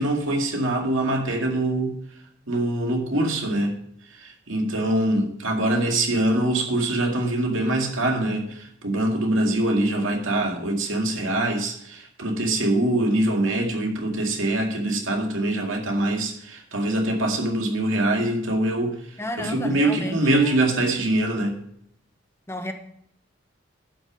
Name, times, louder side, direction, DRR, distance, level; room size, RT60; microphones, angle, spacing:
voice 1, 0.0-2.0 2.5-3.7 4.2-19.0 19.4-21.6, right 1 dB, 90° right, 2 dB, 2.2 m, -24 dB
voice 2, 19.2-20.7 22.5-22.7, left 1 dB, 15° left, 6 dB, 0.9 m, -32 dB
11.5 x 6.1 x 5.0 m, 0.71 s
head